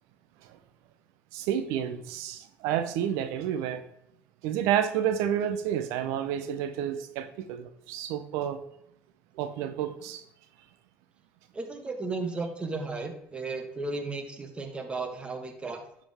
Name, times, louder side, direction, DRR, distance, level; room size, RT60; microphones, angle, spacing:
voice 1, 1.3-3.8 4.4-8.6 9.3-10.2, right 10 dB, 85° right, 11 dB, 0.8 m, -30 dB
voice 2, 11.5-15.8, right 3 dB, 20° right, 5 dB, 1.6 m, -34 dB
11.0 x 5.2 x 3.6 m, 0.78 s
supercardioid pair, 90°, 5 cm